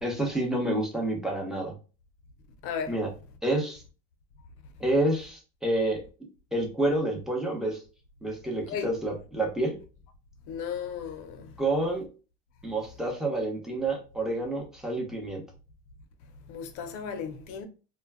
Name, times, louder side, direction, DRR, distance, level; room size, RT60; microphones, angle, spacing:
voice 1, 0.0-1.7 2.9-3.1 3.4-3.8 4.8-6.0 6.5-7.8 8.2-9.8 11.6-12.1 12.6-15.4, right 1 dB, ahead, 0.8 m, -28 dB
voice 2, 2.6-3.0 8.7-8.9 10.5-11.5 16.5-17.6, left 7 dB, 60° left, 0.7 m, -35 dB
2.2 x 2.2 x 3.4 m
supercardioid pair, 105°, 34 cm